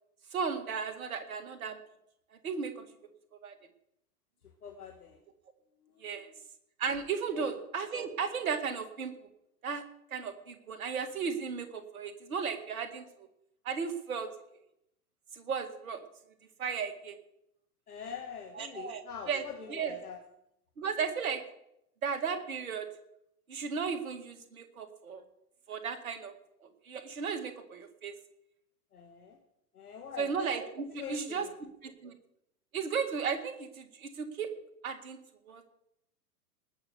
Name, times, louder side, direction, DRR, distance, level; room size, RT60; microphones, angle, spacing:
voice 1, 0.3-1.8 2.4-2.8 3.4-3.5 6.0-6.3 6.8-9.1 9.6-9.8 10.1-13.3 13.7-14.3 15.3-16.0 16.6-17.2 18.6-19.0 19.3-19.4 19.7-19.9 20.8-21.4 22.0-22.9 23.5-25.2 25.7-26.3 26.9-28.1 30.2-32.1 32.7-34.5 34.8-35.2 35.5-35.7, right 6 dB, 60° right, 7 dB, 2.1 m, -35 dB
voice 2, 4.6-5.2 5.9-6.4 7.3-7.5 17.9-20.2 28.9-29.4 29.7-30.3 31.0-31.5, left 7 dB, 70° left, 2 dB, 1.9 m, -44 dB
19.0 x 6.8 x 6.7 m, 0.79 s
figure-of-eight pair, 100°, 46 cm